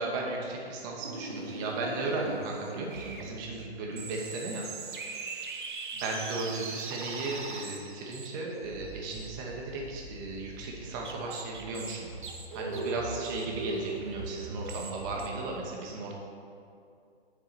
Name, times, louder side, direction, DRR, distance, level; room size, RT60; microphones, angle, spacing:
voice 1, 0.0-4.7 5.9-12.1 12.5-16.1, right 3 dB, 20° right, -1 dB, 0.9 m, -35 dB
sound 1, 1.0-15.3, right 3 dB, 50° right, 0.9 m, -40 dB
8.0 x 4.7 x 6.8 m, 2.5 s
figure-of-eight pair, 130°, 32 cm